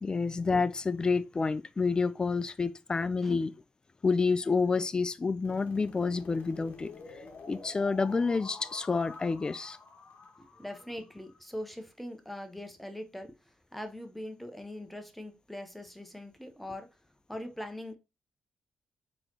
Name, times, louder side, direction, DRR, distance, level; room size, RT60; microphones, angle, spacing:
voice 1, 0.0-3.5 4.0-6.9 7.5-9.8, left 4 dB, 30° left, 0.3 m, -29 dB
sound 1, 5.4-11.4, left 4 dB, 70° left, 0.8 m, -48 dB
voice 2, 10.4-16.9 17.3-17.9, left 1 dB, 5° left, 0.7 m, -42 dB
3.8 x 3.0 x 2.7 m
cardioid pair, 85°, 3 cm